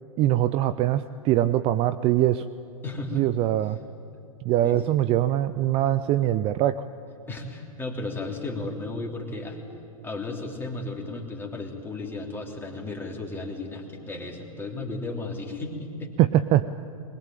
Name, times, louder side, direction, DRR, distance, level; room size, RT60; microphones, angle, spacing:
voice 1, 0.2-2.5 3.1-3.8 4.4-6.8 16.2-16.8, right 13 dB, 30° right, 14 dB, 0.5 m, -22 dB
voice 2, 2.8-3.2 4.6-4.8 7.3-9.6 10.0-16.1, left 2 dB, 10° left, 1 dB, 3.3 m, -34 dB
22.0 x 20.5 x 9.1 m, 2.6 s
hypercardioid pair, 110°, 19 cm